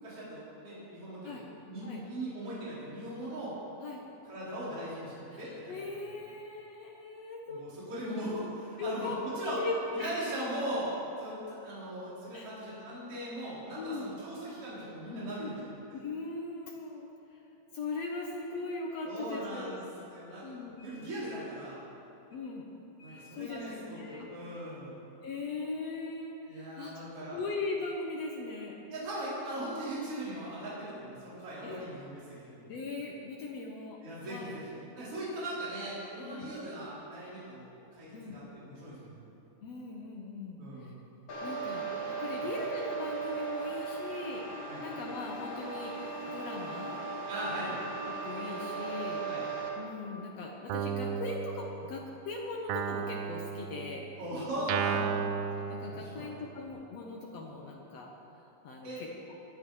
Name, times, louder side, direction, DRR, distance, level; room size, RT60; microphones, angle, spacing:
voice 1, 0.0-3.5 4.3-5.8 7.5-9.6 9.9-10.9 11.2-15.5 19.0-19.8 20.1-20.5 20.8-21.8 23.0-24.9 26.5-27.4 28.9-32.7 34.0-39.3 40.6-40.9 42.4-42.5 44.7-44.8 47.3-47.8 49.2-49.4 54.2-55.0 55.9-56.3 58.8-59.0, right 1 dB, 35° right, -8 dB, 4.6 m, -39 dB
voice 2, 5.3-7.6 8.8-10.1 12.3-12.5 13.7-14.1 15.4-15.5 15.9-17.4 17.7-19.8 20.4-21.0 22.3-22.7 23.0-24.3 25.2-27.0 27.3-28.8 31.6-31.8 32.7-34.6 36.2-36.5 38.1-38.4 39.6-40.9 41.4-44.4 44.8-45.9 46.3-47.0 48.1-49.3 49.7-54.1 55.0-55.2 55.7-58.1 58.6-59.4, left 3 dB, 70° left, 0 dB, 1.6 m, -39 dB
sound 1, 41.3-49.7, right 4 dB, 45° left, 1.8 m, -37 dB
Guitar, 50.7-52.2 52.7-56.6, right 7 dB, 80° right, 2.4 m, -35 dB
19.5 x 11.0 x 4.8 m, 2.8 s
omnidirectional pair, 4.4 m